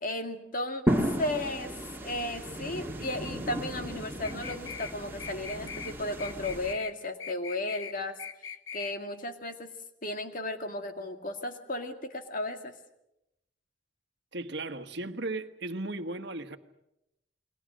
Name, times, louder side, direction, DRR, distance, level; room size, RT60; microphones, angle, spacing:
voice 1, 0.0-1.7 2.0-8.2 8.7-9.7 10.0-12.7, left 1 dB, 45° left, 6 dB, 2.2 m, -34 dB
sound 1, 0.9-6.7, right 1 dB, 10° right, 2.3 m, -34 dB
sound 2, 4.2-4.9 5.2-5.9 6.2-6.9 7.2-8.9, left 7 dB, 85° left, 1.5 m, -41 dB
voice 2, 14.3-16.6, right 2 dB, 60° right, 9 dB, 1.5 m, -36 dB
29.5 x 22.5 x 6.4 m, 0.85 s
head